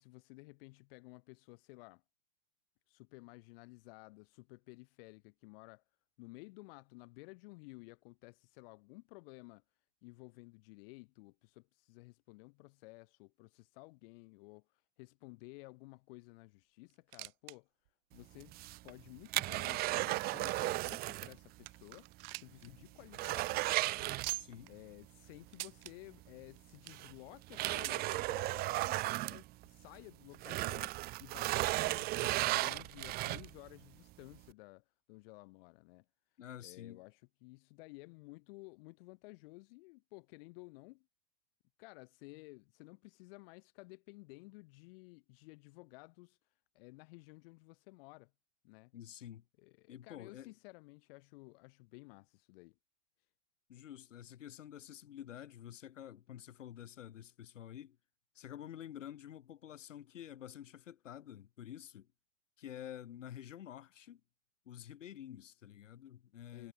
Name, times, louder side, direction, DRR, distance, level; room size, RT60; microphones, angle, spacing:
voice 1, 0.0-2.0 2.9-5.8 6.2-9.6 10.0-17.7 18.1-23.6 24.0-24.3 24.6-36.1 36.6-41.1 41.8-46.4 46.7-48.3 48.6-48.9 49.6-52.8 66.5-66.7, left 25 dB, 45° left, 3.7 m, -55 dB
sound 1, 16.9-17.6 17.9-18.0 18.6-18.7 19.4-20.9 21.3-21.4 21.7-22.7 23.0-23.1 23.3-23.5 24.2-24.7 25.5-25.9 26.6-27.1 27.8-28.2 29.2-29.3 29.5-29.6 30.4-30.5, right 23 dB, 45° right, 1.7 m, -44 dB
sound 2, 18.4-21.4 21.7-21.8 22.2-22.3 22.7-24.7 26.1-26.2 26.9-30.0 30.3-33.7 34.2-34.3, right 19 dB, 25° right, 0.7 m, -35 dB
voice 2, 24.3-24.7 36.4-37.0 48.9-49.4 49.9-50.5 53.7-58.0 58.3-62.1 62.6-64.2 64.7-66.7, left 11 dB, 70° left, 4.5 m, -49 dB
hypercardioid pair, 130°, 38 cm